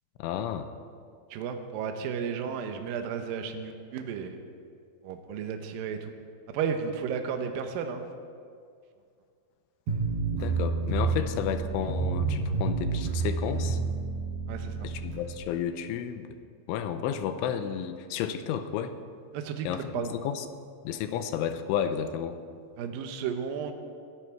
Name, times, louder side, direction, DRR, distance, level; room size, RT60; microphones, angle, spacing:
voice 1, 0.2-0.7 10.3-13.8 14.8-16.3 16.7-18.9 19.7-20.5 20.8-22.4, left 9 dB, 90° left, 10 dB, 3.2 m, -32 dB
voice 2, 1.3-4.4 5.0-6.1 6.5-8.1 14.5-14.9 19.3-20.1 22.8-23.7, right 6 dB, 75° right, 6 dB, 2.2 m, -33 dB
sound 1, 9.9-15.2, right 4 dB, 55° right, 7.1 m, -29 dB
20.5 x 12.5 x 4.6 m, 2.2 s
omnidirectional pair, 5.5 m